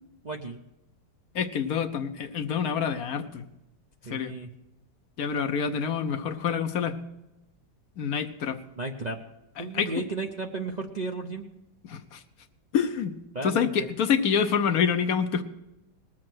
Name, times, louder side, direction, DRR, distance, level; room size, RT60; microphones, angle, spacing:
voice 1, 0.2-0.6 4.0-4.5 8.8-9.2 9.6-11.5 13.3-13.9, right 3 dB, 45° right, 1 dB, 0.6 m, -34 dB
voice 2, 1.3-3.5 4.1-4.3 5.2-7.0 8.0-8.6 9.6-9.9 11.8-12.2 12.7-13.2 13.4-15.4, left 7 dB, 65° left, 8 dB, 1.2 m, -27 dB
19.5 x 7.6 x 6.1 m, 0.92 s
omnidirectional pair, 1.8 m